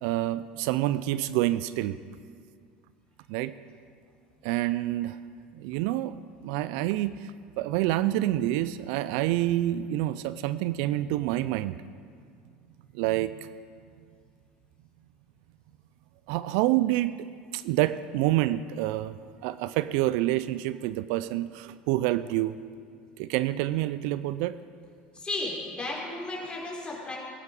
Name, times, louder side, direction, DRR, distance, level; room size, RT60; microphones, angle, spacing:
voice 1, 0.0-2.0 3.3-3.5 4.4-5.2 5.6-7.3 7.6-11.8 12.9-13.5 16.3-17.2 17.5-19.1 19.4-22.6 23.2-24.6, right 15 dB, 65° right, 15 dB, 0.4 m, -27 dB
voice 2, 25.1-27.2, left 2 dB, 20° left, -3 dB, 4.7 m, -34 dB
18.5 x 9.8 x 5.4 m, 2.2 s
hypercardioid pair, 85°, 5 cm